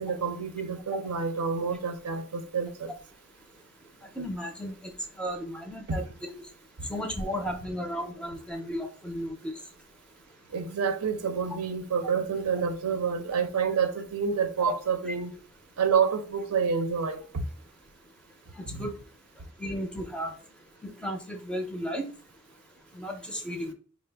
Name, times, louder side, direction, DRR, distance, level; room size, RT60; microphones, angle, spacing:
voice 1, 0.0-2.9 5.9-6.0 6.8-6.9 10.5-15.3 15.8-17.2 18.7-18.8, right 6 dB, 80° right, 0.6 m, -28 dB
voice 2, 4.2-4.7 5.2-6.3 6.9-9.5 15.1-15.2 18.6-18.9 19.6-20.3 20.8-22.1 22.9-23.7, equal, 5° left, 0.4 m, -34 dB
5.0 x 2.0 x 3.3 m
head